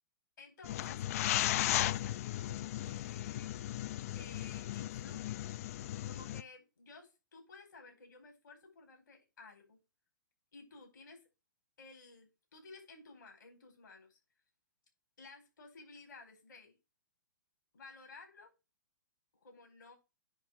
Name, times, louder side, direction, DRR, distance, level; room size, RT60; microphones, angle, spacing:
voice 1, 0.4-3.6 3.8-5.5 6.0-9.8 10.5-11.3 11.8-14.2 15.2-16.8 17.7-18.5 19.4-20.0, left 3 dB, 75° left, 3 dB, 4.6 m, -55 dB
sound 1, 0.6-6.4, left 13 dB, 50° left, 0.4 m, -36 dB
10.0 x 3.5 x 6.1 m, 0.26 s
hypercardioid pair, 120°, 11 cm